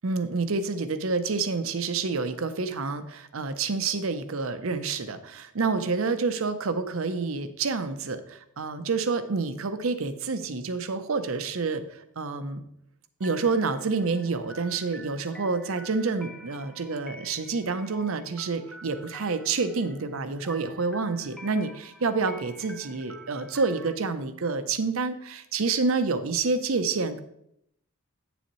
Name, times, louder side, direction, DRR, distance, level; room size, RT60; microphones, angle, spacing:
voice 1, 0.0-12.6 13.2-27.2, right 4 dB, 70° right, 11 dB, 0.7 m, -28 dB
sound 1, 13.2-24.0, right 1 dB, ahead, 0.5 m, -48 dB
9.1 x 7.0 x 3.0 m, 0.75 s
head